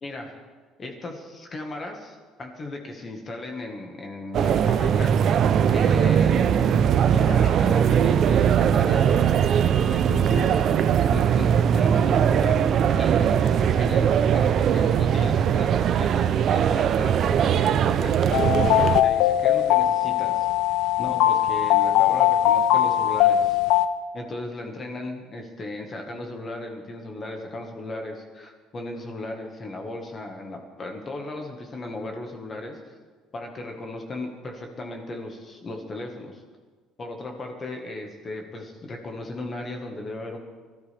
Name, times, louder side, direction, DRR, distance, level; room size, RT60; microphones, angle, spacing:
voice 1, 0.0-0.4 0.8-5.1 5.7-9.2 9.9-10.5 11.1-12.6 13.0-18.4 19.0-20.5 21.0-23.6 24.1-32.8 33.3-36.4 37.0-40.4, left 2 dB, 20° left, 3 dB, 1.5 m, -36 dB
sound 1, 4.3-19.0, right 8 dB, 40° right, 0.5 m, -20 dB
sound 2, 18.3-23.9, left 12 dB, 75° left, 0.7 m, -20 dB
23.0 x 13.5 x 3.4 m, 1.4 s
cardioid pair, 180°, 0 cm